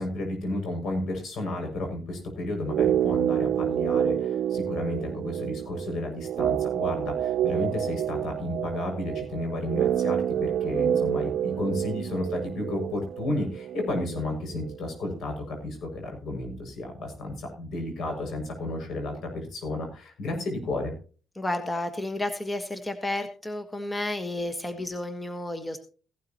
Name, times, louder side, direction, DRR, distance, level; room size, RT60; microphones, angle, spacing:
voice 1, 0.0-20.9, left 2 dB, 70° left, 3 dB, 6.6 m, -32 dB
sound 1, 2.6-14.8 15.0-15.1, right 10 dB, 70° right, 0.5 m, -28 dB
voice 2, 21.4-25.8, left 1 dB, 15° left, 7 dB, 1.5 m, -31 dB
17.0 x 12.5 x 3.0 m, 0.37 s
cardioid pair, 90°, 0 cm